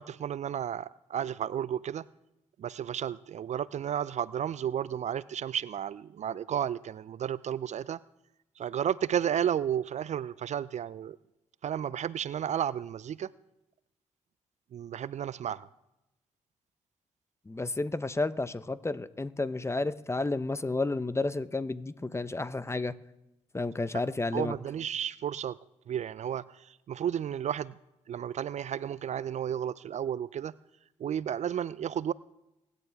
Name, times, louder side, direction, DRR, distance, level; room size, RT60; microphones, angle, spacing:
voice 1, 0.0-2.1 2.6-8.0 8.6-11.2 11.6-13.3 14.7-15.7 23.9-24.0 24.3-25.6 25.9-27.8 28.1-30.5 31.0-32.1, right 9 dB, 50° right, 19 dB, 0.5 m, -32 dB
voice 2, 17.5-22.9 23.5-24.5, left 2 dB, 15° left, 15 dB, 0.8 m, -31 dB
24.0 x 11.0 x 3.5 m, 0.93 s
hypercardioid pair, 45°, 15 cm